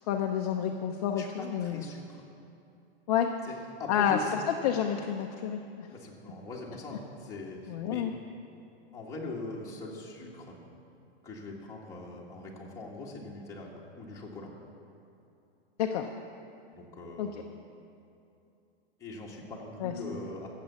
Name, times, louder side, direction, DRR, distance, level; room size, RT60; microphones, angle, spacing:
voice 1, 0.1-1.8 3.1-3.3 3.9-4.2 4.6-5.9 7.7-8.1 15.8-16.1 17.2-17.3 19.8-19.9, left 9 dB, 35° left, 3 dB, 0.6 m, -29 dB
voice 2, 1.2-2.2 3.4-3.5 3.8-4.3 5.9-8.1 8.9-10.6 11.2-14.5 16.7-17.5 19.0-20.5, left 3 dB, 10° left, -4 dB, 1.8 m, -41 dB
14.0 x 7.5 x 8.4 m, 2.7 s
hypercardioid pair, 155°, 32 cm